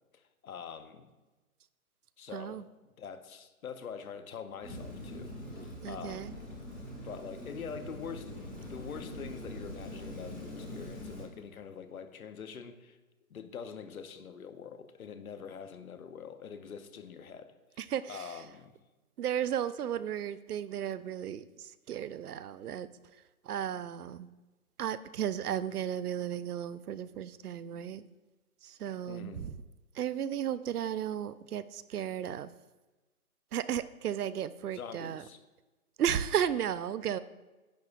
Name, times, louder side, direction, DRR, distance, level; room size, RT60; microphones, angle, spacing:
voice 1, 0.1-1.1 2.2-2.6 3.0-6.5 7.0-13.0 13.3-17.5 18.1-18.8 29.1-29.5 34.7-35.4, left 6 dB, 70° left, 9 dB, 0.9 m, -45 dB
voice 2, 2.3-2.6 5.8-6.3 17.8-18.3 19.2-22.9 23.4-24.3 24.8-28.0 28.6-29.5 29.9-32.5 33.5-35.2 36.0-37.2, right 9 dB, 85° right, 15 dB, 0.6 m, -34 dB
Rain, 4.6-11.2, left 1 dB, ahead, 1.1 m, -43 dB
10.5 x 6.7 x 2.4 m, 1.2 s
hypercardioid pair, 165°, 45 cm